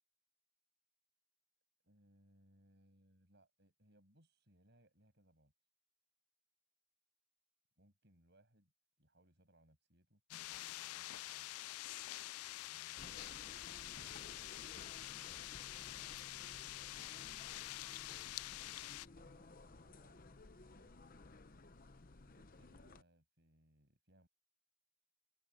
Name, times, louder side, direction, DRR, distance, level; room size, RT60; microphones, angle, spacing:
voice 1, 1.8-5.5 7.8-8.7 9.0-10.2 10.6-11.5 12.6-17.3 18.5-21.2 22.2-24.3, right 1 dB, 50° right, 7.1 m, -71 dB
sound 1, 10.3-19.1, left 16 dB, 85° left, 0.4 m, -47 dB
sound 2, 13.0-23.0, left 3 dB, 40° left, 0.8 m, -57 dB
head